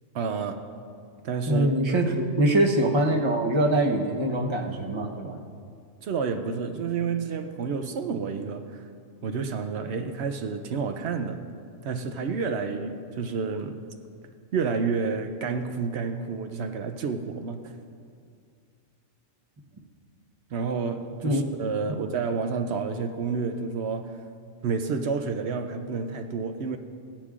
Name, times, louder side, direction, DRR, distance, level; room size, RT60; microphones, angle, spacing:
voice 1, 0.1-0.6 1.2-2.1 6.0-8.9 9.2-11.5 11.8-13.8 14.5-17.7 20.5-24.2 24.6-26.8, right 5 dB, 65° right, 7 dB, 0.8 m, -30 dB
voice 2, 1.5-5.4 21.2-21.5, right 1 dB, 25° right, 1 dB, 0.7 m, -23 dB
16.0 x 10.0 x 2.4 m, 2.3 s
omnidirectional pair, 1.4 m